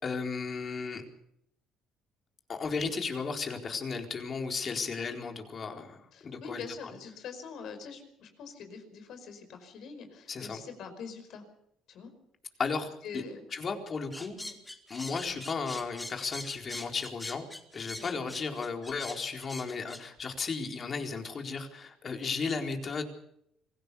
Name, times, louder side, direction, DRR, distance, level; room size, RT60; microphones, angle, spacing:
voice 1, 0.0-1.0 2.5-6.9 10.3-10.6 12.6-13.2 13.5-14.3 14.9-17.5 17.7-23.0, left 5 dB, 45° left, 3 dB, 4.3 m, -35 dB
voice 2, 6.1-11.5 11.9-12.1 13.0-13.4 14.4-14.6 18.0-18.2, left 5 dB, 65° left, 7 dB, 5.3 m, -44 dB
sound 1, 14.1-20.0, left 1 dB, 10° left, 3.4 m, -43 dB
25.5 x 16.5 x 7.0 m, 0.73 s
supercardioid pair, 70°, 0 cm